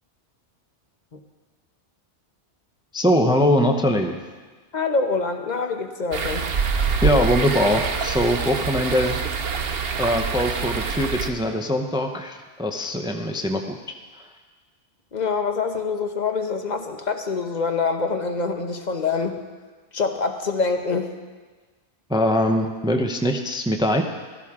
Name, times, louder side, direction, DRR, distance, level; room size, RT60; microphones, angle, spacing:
voice 1, 2.9-4.2 7.0-9.2 10.0-13.8 22.1-24.1, equal, 5° right, 4 dB, 0.6 m, -22 dB
voice 2, 4.7-6.5 15.1-19.4 19.9-21.1, left 4 dB, 40° left, 6 dB, 1.0 m, -25 dB
sound 1, 6.1-11.3, right 5 dB, 55° right, 1.0 m, -25 dB
16.0 x 13.5 x 3.7 m, 1.4 s
omnidirectional pair, 1.2 m